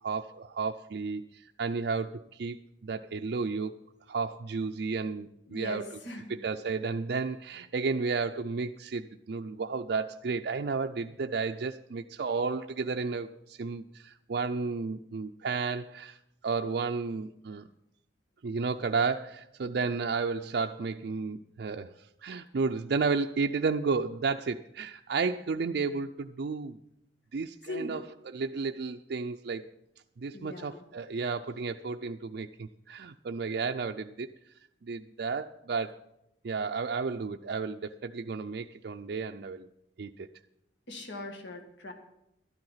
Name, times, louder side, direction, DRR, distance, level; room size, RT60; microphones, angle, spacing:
voice 1, 0.0-3.8 4.1-5.9 6.3-16.2 16.4-17.7 18.4-26.8 27.3-29.7 30.2-34.3 34.8-36.0 36.4-39.7 40.0-40.3, right 4 dB, 60° right, 4 dB, 0.4 m, -32 dB
voice 2, 5.5-6.3 27.6-28.0 30.3-30.9 40.9-41.9, left 2 dB, 70° left, 5 dB, 1.8 m, -40 dB
12.0 x 10.5 x 5.7 m, 0.83 s
head